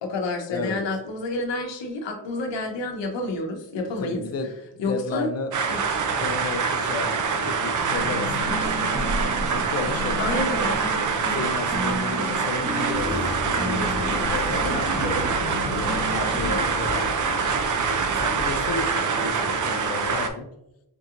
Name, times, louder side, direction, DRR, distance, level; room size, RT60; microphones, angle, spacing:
voice 1, 0.0-5.3 5.6-5.8 10.2-10.8, left 2 dB, 85° left, 3 dB, 0.8 m, -29 dB
voice 2, 0.5-0.8 4.0-5.5 6.2-9.0 9.5-10.2 11.3-14.8 15.7-17.7 18.1-20.5, left 4 dB, 35° left, 7 dB, 0.5 m, -33 dB
sound 1, 5.5-20.3, right 5 dB, 45° right, 0.5 m, -25 dB
sound 2, 7.8-16.5, equal, 10° right, 0.9 m, -34 dB
Laughter, 12.9-18.7, equal, 15° left, 1.3 m, -33 dB
4.5 x 2.8 x 2.5 m, 0.87 s
cardioid pair, 90°, 42 cm